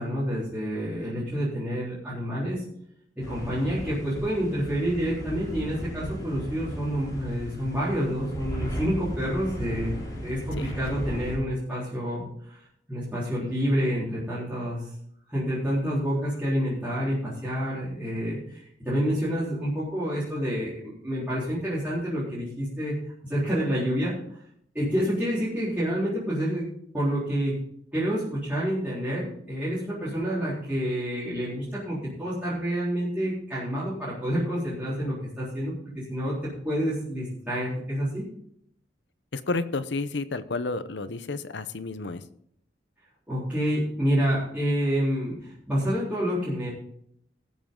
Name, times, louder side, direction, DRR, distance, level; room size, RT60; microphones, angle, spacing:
voice 1, 0.0-2.6 3.3-9.9 10.2-14.9 15.3-24.1 24.7-26.7 26.9-27.5 27.9-36.3 36.6-38.2 43.3-46.7, equal, 10° right, -11 dB, 3.9 m, -28 dB
sound 1, 3.2-11.4, equal, 20° left, 3.6 m, -36 dB
voice 2, 39.3-42.2, left 3 dB, 75° left, 13 dB, 0.8 m, -31 dB
17.5 x 7.3 x 3.8 m, 0.69 s
head